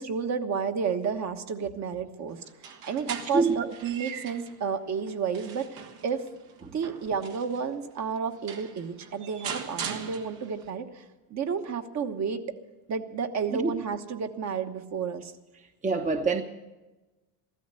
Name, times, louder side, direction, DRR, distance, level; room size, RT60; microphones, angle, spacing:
voice 1, 0.0-6.3 6.7-11.0 11.3-12.6 12.9-15.3, right 6 dB, 40° right, 1.3 m, -31 dB
sound 1, 2.5-4.6 5.1-7.6 8.2-8.3 8.5-10.7, right 7 dB, 75° right, 2.0 m, -40 dB
voice 2, 15.8-16.4, right 4 dB, 15° right, 0.9 m, -24 dB
15.0 x 13.5 x 6.8 m
supercardioid pair, 110°, 43 cm